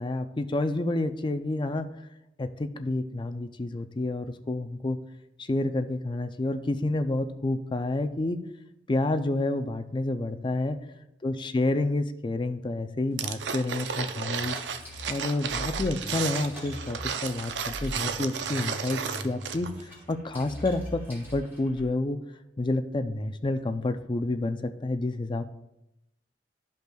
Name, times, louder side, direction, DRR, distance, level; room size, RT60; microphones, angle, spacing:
voice 1, 0.0-1.9 2.4-5.0 5.4-8.4 8.9-10.8 11.2-14.6 15.1-22.2 22.6-25.5, left 2 dB, 25° left, 8 dB, 0.5 m, -29 dB
sound 1, 13.2-19.8 20.1-20.2, right 7 dB, 85° right, 0.5 m, -33 dB
sound 2, 13.9-21.9, equal, 10° right, 2.5 m, -41 dB
13.0 x 5.4 x 2.3 m, 0.87 s
head